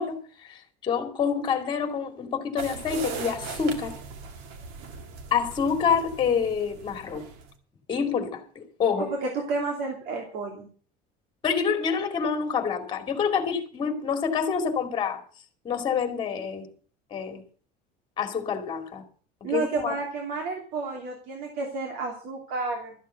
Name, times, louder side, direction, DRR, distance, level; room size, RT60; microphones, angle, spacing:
voice 1, 0.0-3.9 5.3-7.3 7.9-9.1 11.4-15.2 15.6-16.6 17.1-17.4 18.2-19.0 19.5-19.9, left 6 dB, 25° left, 2.4 m, -27 dB
sound 1, 2.6-7.5, right 5 dB, 80° right, 2.2 m, -39 dB
voice 2, 9.0-10.7 19.4-22.9, right 3 dB, 65° right, 2.9 m, -31 dB
13.5 x 7.4 x 7.9 m
cardioid pair, 170°, 17 cm